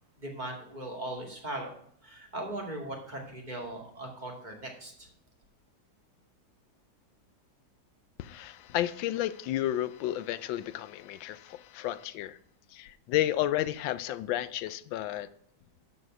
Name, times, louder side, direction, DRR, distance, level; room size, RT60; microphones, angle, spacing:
voice 1, 0.2-1.7 2.0-4.9, right 1 dB, 25° right, 2.2 m, -39 dB
voice 2, 8.2-12.4 12.7-15.3, left 13 dB, 85° left, 1.3 m, -32 dB
12.0 x 4.2 x 7.5 m
omnidirectional pair, 2.0 m